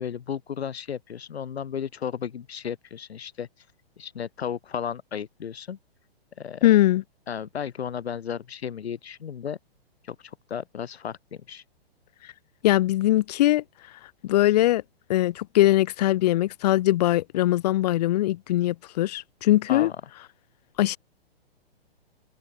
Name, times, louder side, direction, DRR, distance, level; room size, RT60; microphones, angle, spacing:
voice 1, 0.0-3.5 4.0-5.8 6.4-6.6 7.3-9.6 10.1-10.2 10.5-11.6 19.7-20.0, left 8 dB, 85° left, 0.5 m, -34 dB
voice 2, 6.6-7.0 12.6-13.6 14.2-14.8 15.1-19.9 20.8-21.0, left 15 dB, 40° left, 0.6 m, -21 dB
open air
figure-of-eight pair, 120°, 31 cm